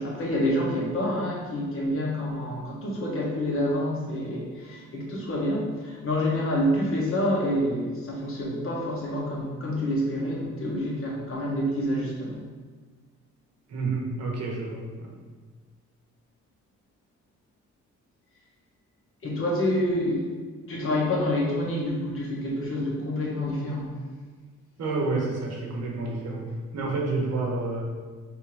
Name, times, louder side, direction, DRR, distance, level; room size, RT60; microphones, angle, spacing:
voice 1, 0.0-12.4 19.2-20.3 20.7-23.9, left 1 dB, 45° left, -4 dB, 1.4 m, -27 dB
voice 2, 13.7-15.1 24.8-27.8, right 3 dB, 60° right, -2 dB, 1.2 m, -29 dB
3.5 x 2.9 x 4.7 m, 1.4 s
cardioid pair, 90°, 30 cm